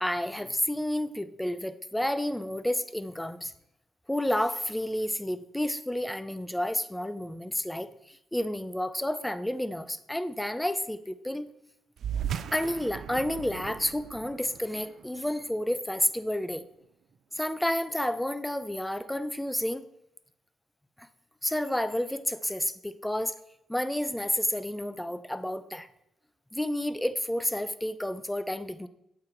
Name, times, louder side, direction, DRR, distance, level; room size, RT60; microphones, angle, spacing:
voice 1, 0.0-3.5 4.1-7.9 8.3-11.5 12.5-16.6 17.3-19.9 21.4-23.3 23.7-25.9 26.5-28.9, left 1 dB, 5° left, 12 dB, 0.6 m, -30 dB
sound 1, 12.0-16.8, right 9 dB, 65° right, 0.5 m, -38 dB
8.7 x 7.9 x 4.5 m, 0.81 s
cardioid pair, 90°, 0 cm